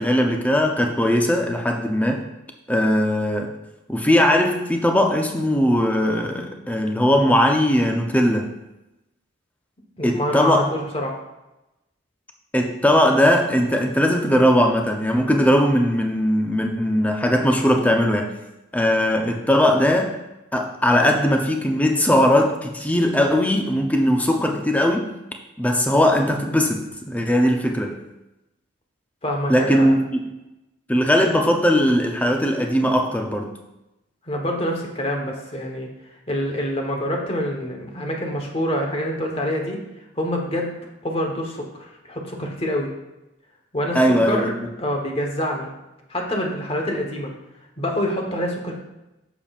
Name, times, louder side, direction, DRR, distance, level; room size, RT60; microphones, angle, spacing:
voice 1, 0.0-2.2 2.7-3.5 3.9-8.5 10.0-10.7 12.5-18.3 18.7-20.1 20.5-25.1 25.6-28.0 29.5-30.2 30.9-33.6 43.9-44.7, equal, 10° left, 2 dB, 0.7 m, -19 dB
voice 2, 10.0-11.2 29.2-30.0 34.3-35.9 36.3-39.8 40.1-40.7 41.0-42.9 43.7-44.5 44.8-45.7 46.1-47.3 47.8-48.7, equal, 30° left, 1 dB, 1.2 m, -26 dB
9.6 x 7.3 x 2.5 m, 0.96 s
head